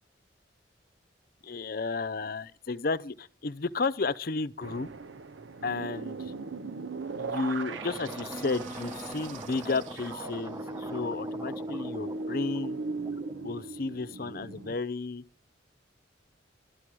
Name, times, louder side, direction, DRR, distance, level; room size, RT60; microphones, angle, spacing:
voice 1, 1.4-4.9 5.6-6.3 7.1-12.8 13.4-15.2, left 3 dB, 50° left, 0.6 m, -33 dB
sound 1, 4.6-14.8, right 3 dB, 85° right, 0.7 m, -38 dB
sound 2, 7.7-13.5, right 1 dB, 15° right, 0.9 m, -43 dB
sound 3, 8.3-10.4, right 2 dB, 40° right, 1.7 m, -44 dB
12.5 x 11.5 x 6.1 m
head